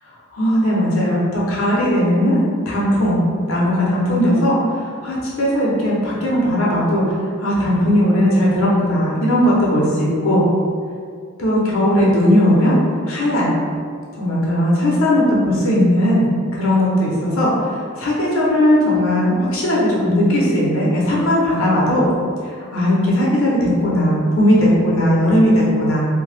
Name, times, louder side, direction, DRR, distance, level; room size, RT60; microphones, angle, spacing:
voice 1, 0.3-2.4 2.7-3.2 3.5-10.4 11.4-12.8 13.1-13.5 14.2-16.2 16.5-22.1 22.4-26.1, equal, 65° left, -5 dB, 0.7 m, -17 dB
2.7 x 2.2 x 3.2 m, 2.2 s
head